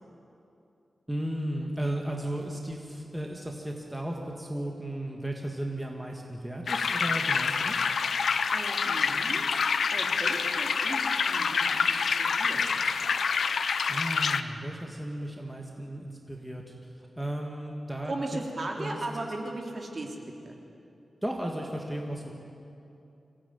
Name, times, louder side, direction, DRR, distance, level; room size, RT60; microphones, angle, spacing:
voice 1, 1.1-7.9 13.9-18.1 18.8-19.0 21.2-22.3, right 1 dB, 5° right, 0 dB, 1.8 m, -35 dB
sound 1, 6.7-14.4, left 5 dB, 80° left, 0.8 m, -27 dB
voice 2, 8.5-12.9 18.0-20.2 20.4-20.6, right 2 dB, 40° right, 1 dB, 3.0 m, -38 dB
25.0 x 17.0 x 9.4 m, 2.7 s
wide cardioid pair, 165°, 0 cm